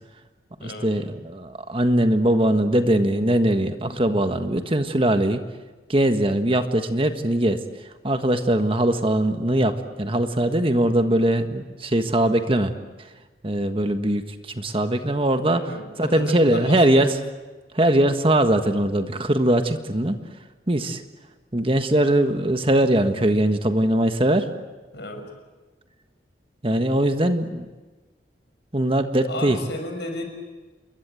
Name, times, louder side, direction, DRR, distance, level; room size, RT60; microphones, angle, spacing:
voice 1, 0.6-5.4 5.9-7.6 8.0-12.7 13.4-17.2 17.7-20.2 20.7-21.0 21.5-24.5 26.6-27.7 28.7-29.6, right 1 dB, 30° right, 8 dB, 1.5 m, -21 dB
voice 2, 15.5-16.2 16.5-16.8 24.9-25.3 29.3-30.2, left 1 dB, 65° left, 5 dB, 6.0 m, -33 dB
28.5 x 22.0 x 9.1 m, 1.2 s
head